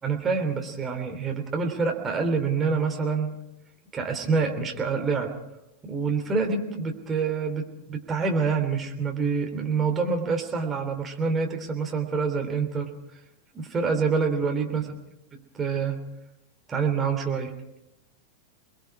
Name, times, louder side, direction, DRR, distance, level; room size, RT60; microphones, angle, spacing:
voice 1, 0.0-3.3 3.9-5.4 5.8-12.9 13.5-14.8 15.3-16.0 16.7-17.5, right 5 dB, 20° right, 3 dB, 3.2 m, -26 dB
29.0 x 21.0 x 4.8 m, 0.89 s
figure-of-eight pair, 90°, 0 cm